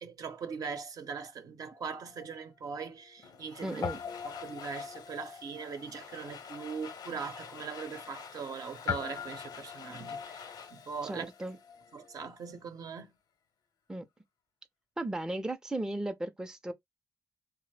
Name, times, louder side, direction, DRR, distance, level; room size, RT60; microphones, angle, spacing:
voice 1, 0.0-3.8 4.2-11.3 11.9-13.1, right 6 dB, 65° right, 0.7 m, -41 dB
Guitar, 1.7-3.5 3.8-12.4, left 7 dB, 60° left, 0.4 m, -43 dB
Domestic sounds home sounds, 3.2-12.1, left 7 dB, 90° left, 0.7 m, -49 dB
voice 2, 3.6-4.0 11.0-11.6 13.9-14.1 15.0-16.7, right 1 dB, 10° right, 0.4 m, -35 dB
3.2 x 2.0 x 3.2 m
cardioid pair, 110°, 7 cm